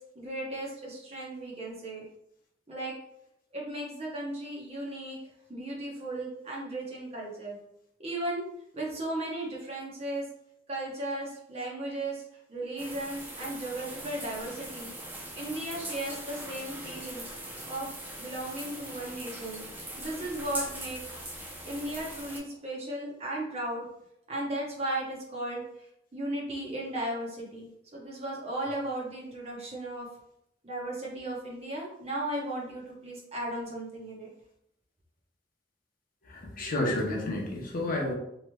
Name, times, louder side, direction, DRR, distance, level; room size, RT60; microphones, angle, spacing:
voice 1, 0.0-2.0 2.7-2.9 3.5-5.2 5.5-7.6 8.0-8.4 8.7-10.3 10.7-12.2 12.5-14.9 15.3-17.3 17.7-17.9 18.2-21.0 21.6-23.9 24.3-25.9 26.1-30.1 30.6-34.3, right 1 dB, 35° right, -3 dB, 0.8 m, -36 dB
sound 1, 12.8-22.4, right 1 dB, 10° right, 0.5 m, -41 dB
voice 2, 36.3-38.1, left 1 dB, 50° left, -1 dB, 0.7 m, -30 dB
3.1 x 3.0 x 2.2 m, 0.78 s
head